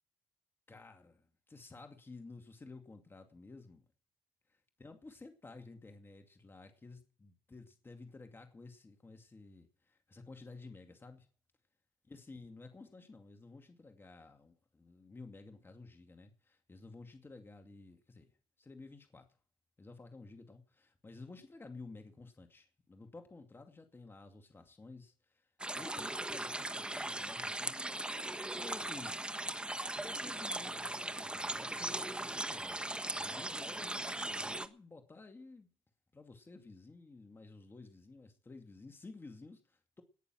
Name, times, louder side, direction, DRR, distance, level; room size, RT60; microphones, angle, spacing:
voice 1, 0.7-3.8 4.5-11.3 12.1-18.3 18.6-19.3 19.8-27.8 28.5-29.2 29.9-32.8 33.1-35.7 36.1-40.0, left 3 dB, 25° left, 2.4 m, -53 dB
sound 1, 25.6-34.7, right 1 dB, 10° right, 1.2 m, -39 dB
19.0 x 6.9 x 7.7 m
supercardioid pair, 75°, 9 cm